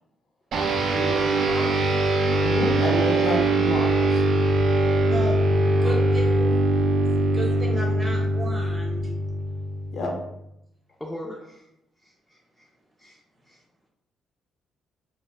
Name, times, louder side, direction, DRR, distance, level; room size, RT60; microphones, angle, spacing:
sound 1, 0.5-10.3, right 1 dB, 70° right, 0.4 m, -22 dB
voice 1, 0.8-2.0 5.7-6.1 11.0-11.7 12.0-12.7 13.0-13.2 13.5-13.6, left 1 dB, 10° left, -3 dB, 0.4 m, -38 dB
voice 2, 2.4-4.4 9.9-10.1, left 2 dB, 60° left, 1 dB, 0.6 m, -29 dB
voice 3, 5.6-6.5 7.3-9.1, right 1 dB, 30° right, 0 dB, 0.7 m, -33 dB
2.1 x 2.1 x 3.1 m, 0.80 s
cardioid pair, 90°, 0 cm